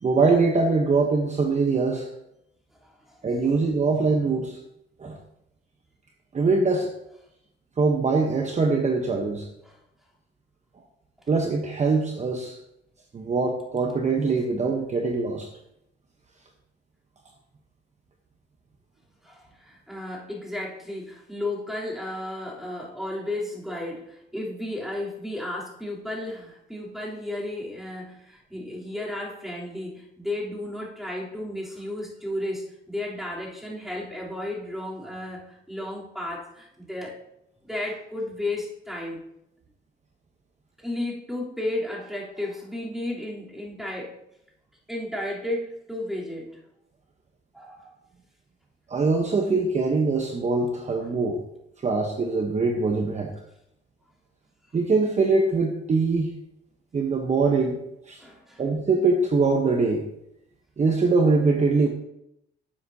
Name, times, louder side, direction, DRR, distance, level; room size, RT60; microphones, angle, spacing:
voice 1, 0.0-2.1 3.2-4.6 5.0-5.2 6.3-6.9 7.8-9.5 11.3-12.6 13.1-15.5 48.9-51.4 51.8-53.3 54.7-56.3 56.9-58.2 58.6-60.0 60.8-61.9, right 4 dB, 35° right, 2 dB, 1.1 m, -23 dB
voice 2, 2.8-3.2 9.6-9.8 19.2-37.2 37.6-39.2 40.8-44.2 44.9-46.6 47.5-48.0 58.2-58.6, left 1 dB, ahead, -5 dB, 3.5 m, -33 dB
12.5 x 8.0 x 2.9 m, 0.81 s
cardioid pair, 90°, 20 cm